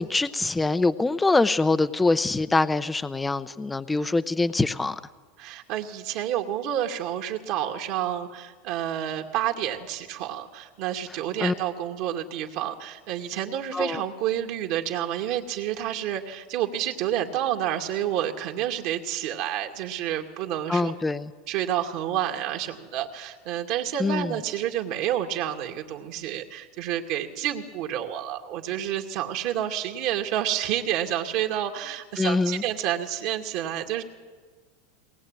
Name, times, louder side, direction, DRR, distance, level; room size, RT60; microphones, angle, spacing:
voice 1, 0.0-5.0 11.4-11.5 13.7-14.0 20.7-21.3 24.0-24.3 32.2-32.6, left 3 dB, 10° left, 12 dB, 0.7 m, -24 dB
voice 2, 5.4-20.9 21.5-34.0, right 11 dB, 55° right, 3 dB, 2.4 m, -29 dB
22.0 x 20.0 x 9.0 m, 1.4 s
supercardioid pair, 130°, 0 cm